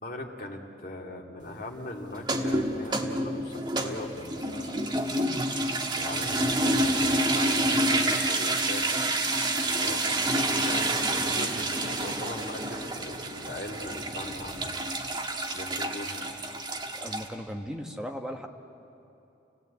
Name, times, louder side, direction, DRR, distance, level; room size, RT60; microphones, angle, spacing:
voice 1, 0.0-4.8 6.0-9.1 9.6-14.7 15.5-16.3, left 1 dB, 50° left, 0 dB, 2.4 m, -40 dB
sound 1, 2.2-17.3, right 1 dB, 25° right, 1.4 m, -28 dB
voice 2, 16.9-18.5, equal, 5° right, 3 dB, 1.2 m, -37 dB
29.0 x 18.5 x 8.4 m, 2.9 s
head